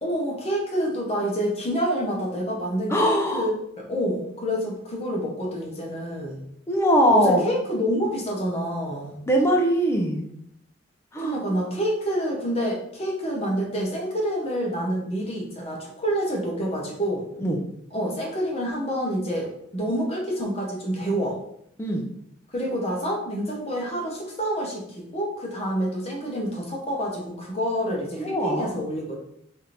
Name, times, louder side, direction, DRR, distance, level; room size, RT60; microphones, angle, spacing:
voice 1, 0.0-3.5 3.8-6.4 7.1-9.2 11.2-17.2 17.9-21.4 22.5-29.1, equal, 30° left, -2 dB, 0.8 m, -27 dB
voice 2, 2.9-3.5 6.7-7.5 9.3-10.3 11.1-11.4 17.4-17.6 21.8-22.0 28.2-28.7, equal, 15° left, 0 dB, 0.5 m, -21 dB
3.4 x 2.5 x 4.3 m, 0.72 s
head